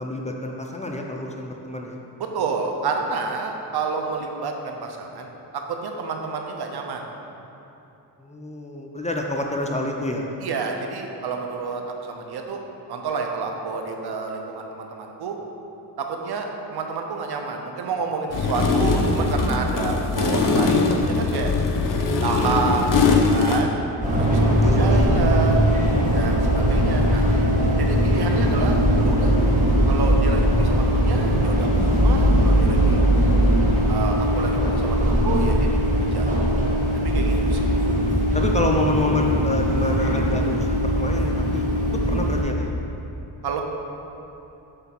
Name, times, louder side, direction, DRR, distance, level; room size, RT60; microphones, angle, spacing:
voice 1, 0.0-2.0 8.2-10.3 24.6-25.8 38.3-41.6 42.1-42.7, left 1 dB, 15° left, 1 dB, 0.6 m, -28 dB
voice 2, 2.2-7.0 10.4-12.6 12.9-15.4 16.0-21.5 22.2-23.7 24.1-25.6 26.1-27.2 27.8-28.8 29.0-29.4 29.9-33.0 33.9-36.3 36.9-37.8 43.4-43.6, right 4 dB, 65° right, 3 dB, 0.9 m, -29 dB
sound 1, 18.3-23.6, left 4 dB, 50° left, 0.8 m, -21 dB
sound 2, 24.0-42.4, equal, 20° right, 1.5 m, -20 dB
8.0 x 3.4 x 5.9 m, 2.9 s
cardioid pair, 95°, 42 cm